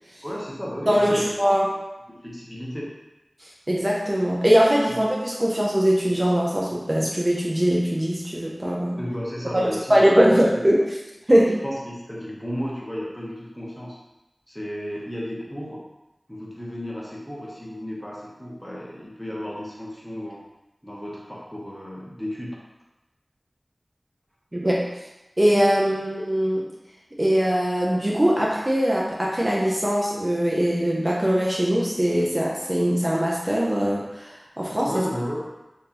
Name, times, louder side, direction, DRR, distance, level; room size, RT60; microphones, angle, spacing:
voice 1, 0.2-1.3 2.1-2.9 9.0-10.7 11.6-14.0 14.5-15.8 16.3-20.4 20.8-22.5 34.9-35.4, equal, 5° left, -5 dB, 0.9 m, -33 dB
voice 2, 0.9-1.8 3.4-9.0 9.5-10.8 11.3-11.5 24.5-24.9 25.4-26.7 27.2-35.0, equal, 35° right, -4 dB, 0.5 m, -21 dB
3.7 x 2.6 x 2.8 m, 0.99 s
wide cardioid pair, 50°, 0 cm